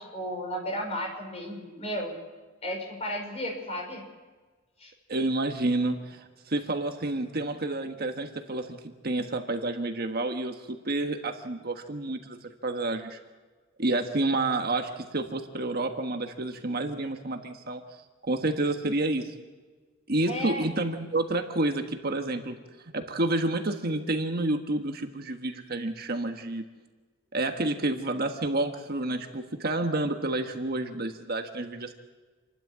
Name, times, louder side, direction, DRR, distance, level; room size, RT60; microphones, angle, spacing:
voice 1, 0.1-2.1 2.6-4.0 4.8-4.9 20.3-20.7, equal, 30° left, 2 dB, 5.7 m, -33 dB
voice 2, 5.1-12.4 12.6-13.2 13.8-17.8 18.2-19.3 20.1-22.6 22.9-26.6 27.3-31.9, right 2 dB, 50° right, 5 dB, 1.4 m, -29 dB
28.0 x 12.0 x 8.6 m, 1.4 s
head